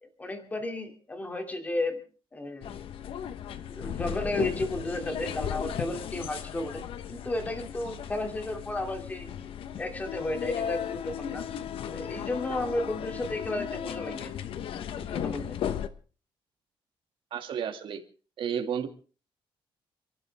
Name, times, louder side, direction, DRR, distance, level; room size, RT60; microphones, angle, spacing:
voice 1, 0.0-2.0 2.3-2.7 3.7-6.8 7.1-9.3 9.8-11.4 11.9-14.3 15.0-15.6, left 1 dB, 15° left, 4 dB, 2.6 m, -33 dB
sound 1, 2.6-15.9, left 9 dB, 70° left, 1.1 m, -36 dB
voice 2, 17.3-18.0 18.4-18.9, right 8 dB, 60° right, 4 dB, 2.3 m, -31 dB
30.0 x 12.0 x 3.5 m, 0.39 s
wide cardioid pair, 175°, 10 cm